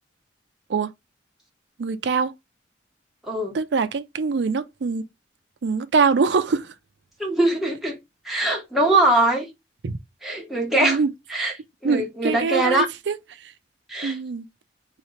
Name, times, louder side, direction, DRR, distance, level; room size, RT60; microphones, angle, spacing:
voice 1, 1.8-2.3 3.5-5.1 5.6-6.7 9.8-10.0 10.7-11.1 11.8-13.5 14.0-14.5, right 5 dB, 70° right, 0.4 m, -24 dB
voice 2, 7.2-8.0 8.2-9.5 10.2-11.0 11.3-11.5 11.8-12.9 13.9-14.2, right 2 dB, ahead, 1.1 m, -22 dB
3.9 x 2.8 x 3.2 m
head